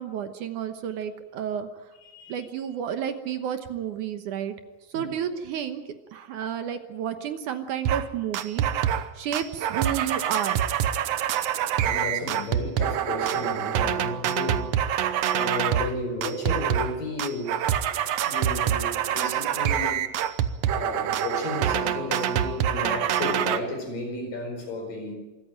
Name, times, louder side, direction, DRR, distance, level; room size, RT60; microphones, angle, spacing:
voice 1, 0.0-1.7 2.3-4.5 4.9-5.8 6.1-8.6 9.1-10.6, right 9 dB, 70° right, 8 dB, 2.4 m, -31 dB
voice 2, 2.0-2.5 4.9-5.1 11.3-17.6 18.2-20.0 20.7-25.2, left 2 dB, 70° left, 4 dB, 6.4 m, -33 dB
sound 1, 7.9-8.1 8.3-9.1 9.3-15.9 16.2-16.9 17.2-23.6, right 10 dB, 85° right, 1.4 m, -26 dB
25.5 x 14.0 x 9.1 m, 1.1 s
omnidirectional pair, 4.1 m